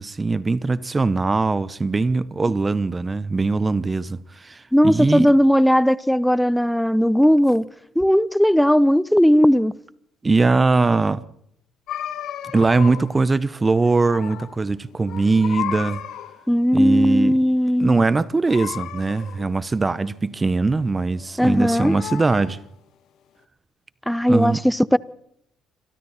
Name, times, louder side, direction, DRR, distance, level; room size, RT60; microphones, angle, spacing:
voice 1, 0.0-5.3 10.2-11.2 12.5-16.0 16.7-17.4 17.8-22.6 24.3-24.6, right 3 dB, 25° right, 1.1 m, -21 dB
voice 2, 4.7-7.7 8.0-9.8 16.5-18.0 21.4-21.9 24.1-25.0, equal, ahead, 0.8 m, -17 dB
sound 1, 11.9-13.2 13.5-14.6 14.9-16.5 18.4-19.6 21.2-22.7, left 11 dB, 65° left, 1.7 m, -34 dB
26.5 x 23.5 x 4.3 m
hypercardioid pair, 55°, 0 cm